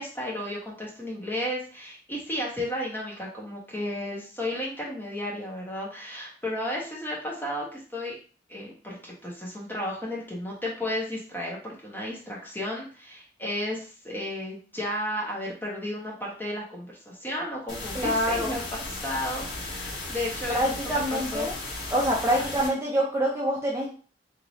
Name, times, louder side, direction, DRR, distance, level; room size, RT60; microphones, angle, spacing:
voice 1, 0.0-8.2 8.5-18.6 18.9-21.5 22.6-22.7, left 1 dB, 10° left, -4 dB, 1.2 m, -33 dB
sound 1, 17.7-22.7, left 2 dB, 70° left, 1.4 m, -36 dB
voice 2, 17.9-18.6 20.5-21.5 21.9-23.9, equal, 15° right, -4 dB, 0.6 m, -26 dB
3.2 x 2.8 x 4.0 m, 0.40 s
head